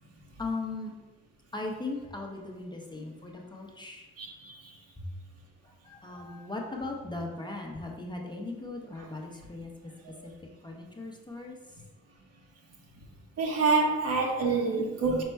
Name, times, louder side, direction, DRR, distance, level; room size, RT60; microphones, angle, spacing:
voice 1, 0.4-0.9 1.5-4.1 5.6-9.7 10.2-10.3 10.6-11.6, left 2 dB, 15° left, -1 dB, 0.6 m, -38 dB
voice 2, 4.2-4.7 9.0-9.1 10.0-10.1 13.4-15.2, right 4 dB, 55° right, 1 dB, 0.9 m, -27 dB
5.2 x 2.1 x 4.5 m, 1.2 s
cardioid pair, 90°, 30 cm